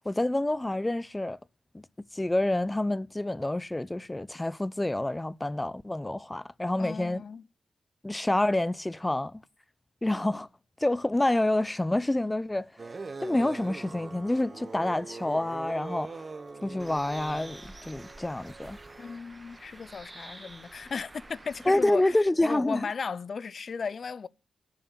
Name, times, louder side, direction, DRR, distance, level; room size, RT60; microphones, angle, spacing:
voice 1, 0.0-1.4 1.7-7.2 8.0-9.4 10.0-10.5 10.8-12.7 13.2-16.2 16.6-18.8 21.7-22.9, left 1 dB, 20° left, 0.7 m, -28 dB
voice 2, 6.8-7.4 19.0-24.3, left 5 dB, 60° left, 0.6 m, -36 dB
sound 1, 12.8-19.2, right 4 dB, 45° right, 1.3 m, -42 dB
Bird, 16.8-22.2, right 2 dB, 25° right, 1.6 m, -48 dB
10.5 x 7.0 x 8.7 m
supercardioid pair, 40°, 0 cm